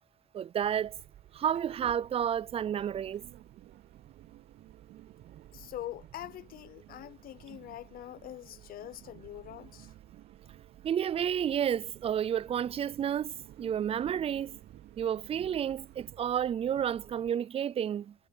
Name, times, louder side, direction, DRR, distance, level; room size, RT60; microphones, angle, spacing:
voice 1, 0.3-1.0 1.3-3.2 10.8-14.6 15.0-18.1, right 9 dB, 35° right, 0.4 m, -31 dB
sound 1, 0.6-17.3, right 12 dB, 65° right, 4.5 m, -55 dB
sound 2, 2.5-16.1, right 15 dB, 85° right, 3.3 m, -56 dB
voice 2, 5.5-9.9, left 13 dB, 60° left, 0.7 m, -44 dB
cardioid pair, 110°, 17 cm